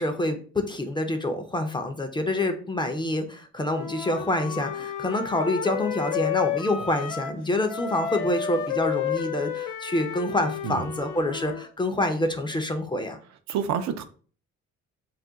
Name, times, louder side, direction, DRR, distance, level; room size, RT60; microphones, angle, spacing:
voice 1, 0.0-13.2, left 1 dB, 15° left, 0.4 m, -27 dB
Wind instrument woodwind instrument, 3.6-7.4 7.7-11.7, left 8 dB, 80° left, 0.5 m, -32 dB
voice 2, 13.5-14.0, right 7 dB, 65° right, 0.5 m, -28 dB
2.4 x 2.2 x 3.7 m
cardioid pair, 90°, 30 cm